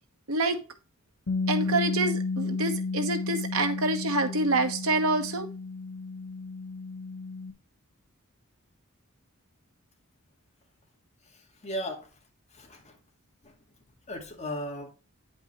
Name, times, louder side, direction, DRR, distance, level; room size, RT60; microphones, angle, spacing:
voice 1, 0.3-0.6 1.5-5.5, right 2 dB, 80° right, 1.3 m, -27 dB
Bass guitar, 1.3-7.5, left 3 dB, 90° left, 1.2 m, -32 dB
voice 2, 11.2-12.1 12.5-13.0 13.4-13.5 14.1-14.9, equal, 35° left, 2.1 m, -37 dB
9.5 x 5.3 x 3.2 m
head